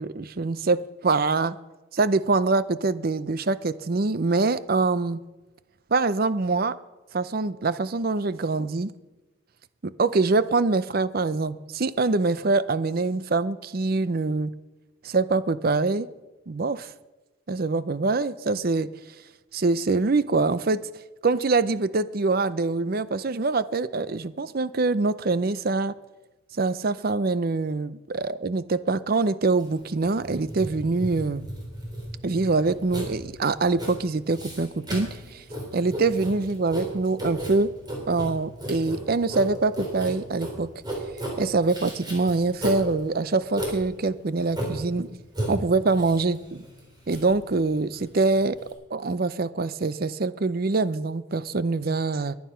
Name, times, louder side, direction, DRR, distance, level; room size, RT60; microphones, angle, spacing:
voice 1, 0.0-1.6 1.9-5.2 5.9-6.8 7.1-8.9 9.8-14.5 15.0-16.1 16.5-16.9 17.5-18.9 19.5-20.8 21.2-25.9 26.6-31.5 32.2-35.4 35.7-37.7 38.1-40.7 41.4-45.1 45.5-46.7 47.1-48.6 48.9-52.4, right 3 dB, 45° right, 16 dB, 0.6 m, -24 dB
Writing, 29.6-48.7, right 1 dB, 20° right, 4.2 m, -35 dB
22.0 x 9.6 x 5.7 m, 1.1 s
head